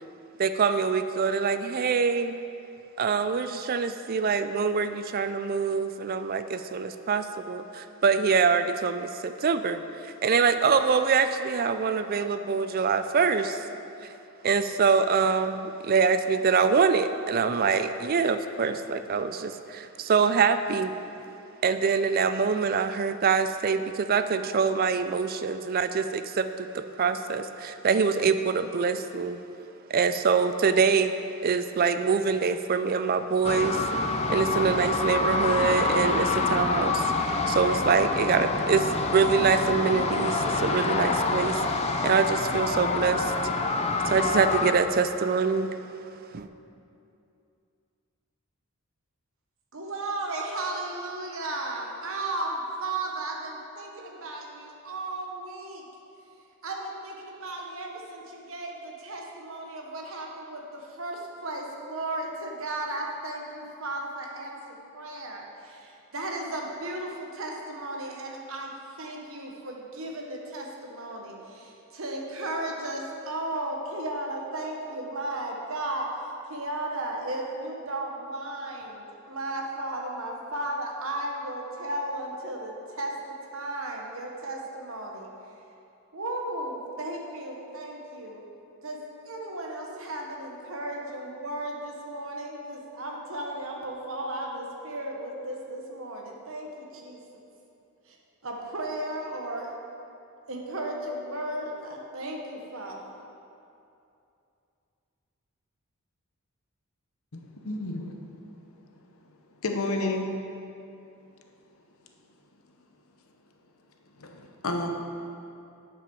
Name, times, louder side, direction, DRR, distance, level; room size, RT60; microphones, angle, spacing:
voice 1, 0.4-2.4 3.0-13.6 14.4-20.9 21.6-29.4 29.9-31.1 31.4-33.8 34.3-37.1 37.5-41.6 42.0-43.3 44.0-45.7 46.3-46.5, right 5 dB, 40° right, 10 dB, 0.4 m, -25 dB
sound 1, 33.4-44.7, left 3 dB, 30° left, 0.5 m, -26 dB
voice 2, 49.7-55.8 56.6-68.7 69.0-76.1 76.4-85.3 86.1-88.4 88.8-89.0 89.2-97.2 98.1-98.2 98.4-99.8 100.5-103.1, right 1 dB, 65° right, 0 dB, 1.2 m, -35 dB
voice 3, 107.3-108.2 109.6-110.3 114.2-114.9, left 2 dB, 70° left, 3 dB, 0.9 m, -31 dB
7.8 x 5.9 x 6.9 m, 2.7 s
head